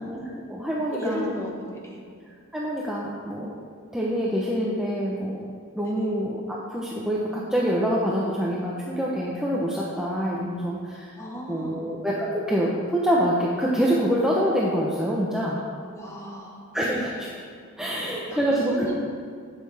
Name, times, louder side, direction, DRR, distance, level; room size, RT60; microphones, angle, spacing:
voice 1, 0.0-1.3 2.5-3.5 3.9-5.4 5.7-11.1 11.5-15.6 16.7-17.3 17.8-18.9, equal, 5° right, -5 dB, 0.9 m, -26 dB
voice 2, 0.9-2.0 5.8-6.1 11.2-11.9 15.9-17.0 18.3-18.4 18.7-18.9, left 1 dB, 15° left, -2 dB, 1.6 m, -35 dB
12.0 x 8.6 x 3.5 m, 2.1 s
head